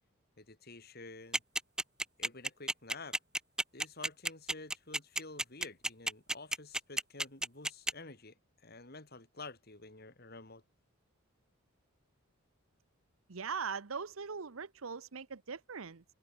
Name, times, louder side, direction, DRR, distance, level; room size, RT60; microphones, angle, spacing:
voice 1, 0.4-1.4 2.2-3.2 3.7-8.3 8.6-10.6, left 3 dB, 50° left, 4.0 m, -50 dB
sound 1, 1.3-7.9, right 1 dB, 5° right, 0.6 m, -32 dB
voice 2, 13.3-16.0, right 5 dB, 80° right, 0.9 m, -40 dB
head